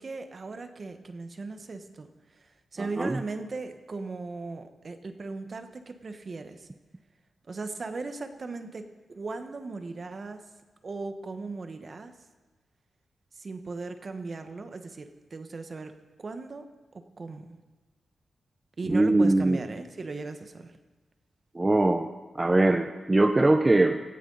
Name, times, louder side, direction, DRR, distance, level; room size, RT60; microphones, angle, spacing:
voice 1, 0.0-6.7 7.5-10.4 10.8-12.1 13.3-15.9 16.2-16.7 16.9-17.6 18.8-20.7, right 3 dB, 45° right, 8 dB, 1.3 m, -38 dB
voice 2, 2.8-3.2 18.9-19.6 21.5-24.0, right 2 dB, 25° right, 6 dB, 0.7 m, -22 dB
17.5 x 14.0 x 4.1 m, 1.3 s
cardioid pair, 75°, 0 cm